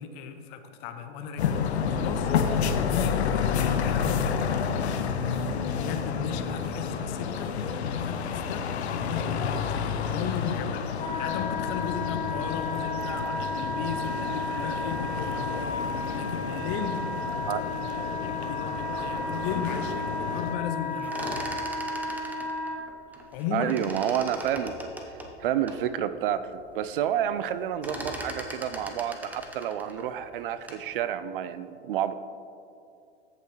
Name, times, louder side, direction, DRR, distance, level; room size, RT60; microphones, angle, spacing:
voice 1, 0.0-8.7 9.0-15.5 16.1-17.0 18.2-21.7 23.3-23.9, left 7 dB, 40° left, 7 dB, 0.7 m, -36 dB
sound 1, 1.4-20.5, left 6 dB, 75° left, 0.7 m, -30 dB
Wind instrument woodwind instrument, 11.0-22.8, left 2 dB, 20° left, 1.0 m, -33 dB
sound 2, 20.9-23.4 23.7-25.8 26.3-26.4 26.7-27.1 27.4-30.9, equal, 5° right, 0.7 m, -39 dB
voice 2, 23.5-24.9 25.4-32.1, right 10 dB, 55° right, 13 dB, 0.4 m, -29 dB
14.0 x 5.6 x 3.0 m, 2.5 s
hypercardioid pair, 110°, 33 cm